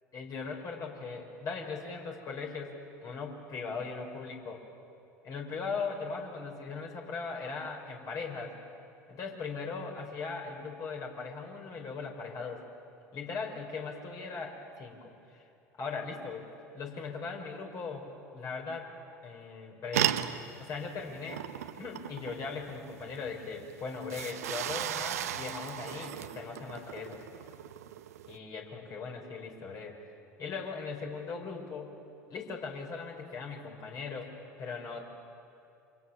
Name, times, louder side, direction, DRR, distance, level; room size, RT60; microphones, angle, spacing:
voice 1, 0.1-2.8 3.0-4.6 5.2-8.6 9.1-12.7 13.1-15.5 15.8-16.5 16.7-18.9 19.2-20.1 20.6-21.5 21.8-27.2 28.3-30.0 30.4-32.0 32.3-34.3 34.6-35.0, left 4 dB, 45° left, 1 dB, 5.7 m, -39 dB
sound 1, 19.9-28.4, right 11 dB, 75° right, 0.9 m, -36 dB
28.5 x 26.0 x 7.4 m, 2.7 s
figure-of-eight pair, 70°, 8 cm